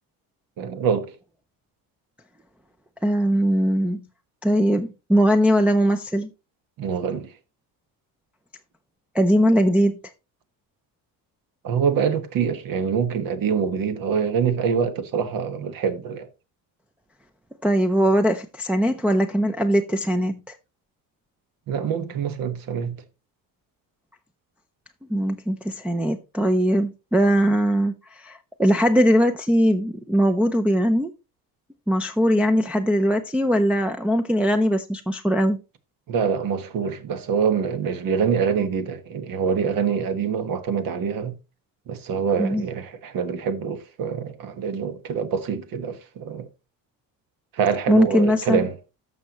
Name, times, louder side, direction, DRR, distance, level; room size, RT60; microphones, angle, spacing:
voice 1, 0.6-1.1 6.8-7.3 11.6-16.3 21.7-23.0 36.1-41.3 41.9-46.5 47.5-48.8, right 6 dB, 60° right, 1.4 m, -25 dB
voice 2, 3.0-4.0 4.4-6.3 9.1-10.0 17.6-20.4 25.1-31.1 31.9-35.6 42.4-42.7 47.9-48.6, equal, 5° right, 0.5 m, -20 dB
14.0 x 5.7 x 2.9 m
cardioid pair, 120°, 38 cm